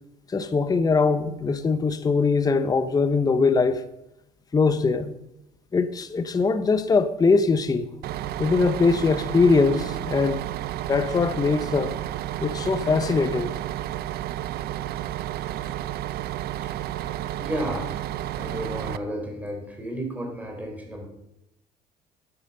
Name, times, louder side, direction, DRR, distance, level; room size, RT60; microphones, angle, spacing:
voice 1, 0.3-3.8 4.5-5.2 5.7-7.9 8.4-10.4 10.9-12.0 12.4-13.5, left 4 dB, 20° left, 0.7 m, -22 dB
Bus, 8.0-19.0, right 12 dB, 70° right, 0.5 m, -31 dB
voice 2, 17.3-17.9 18.3-21.1, equal, 10° right, 3.5 m, -32 dB
10.0 x 8.0 x 6.5 m
cardioid pair, 110°, 17 cm